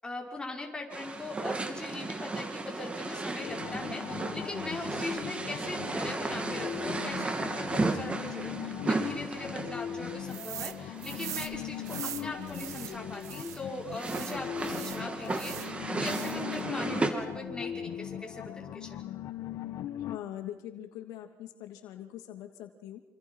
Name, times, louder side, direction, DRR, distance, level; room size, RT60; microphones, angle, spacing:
voice 1, 0.0-19.0, left 2 dB, 15° left, 0 dB, 6.0 m, -40 dB
sound 1, 0.9-17.1, right 3 dB, 20° right, 3.0 m, -35 dB
sound 2, 3.4-20.2, left 10 dB, 60° left, 1.5 m, -40 dB
sound 3, 10.3-10.8 11.0-13.6 14.0-15.7 16.0-16.5, right 12 dB, 60° right, 0.9 m, -41 dB
voice 2, 20.0-23.0, left 12 dB, 85° left, 5 dB, 2.7 m, -42 dB
28.0 x 27.0 x 5.7 m, 0.98 s
cardioid pair, 120°, 6 cm